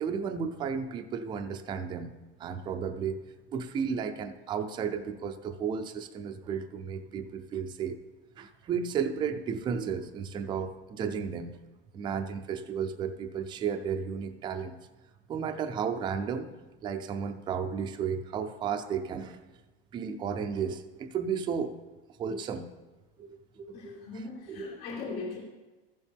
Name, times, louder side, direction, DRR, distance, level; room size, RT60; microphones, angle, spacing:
voice 1, 0.0-3.2 3.5-8.0 8.4-11.6 11.9-14.8 15.3-16.5 16.8-19.4 19.9-21.9 22.2-22.7 23.2-23.3 23.6-24.1 24.5-24.8, right 6 dB, 15° right, 7 dB, 0.4 m, -33 dB
voice 2, 23.7-25.4, left 3 dB, 75° left, -6 dB, 2.5 m, -39 dB
14.5 x 7.2 x 3.5 m, 1.2 s
supercardioid pair, 155°, 29 cm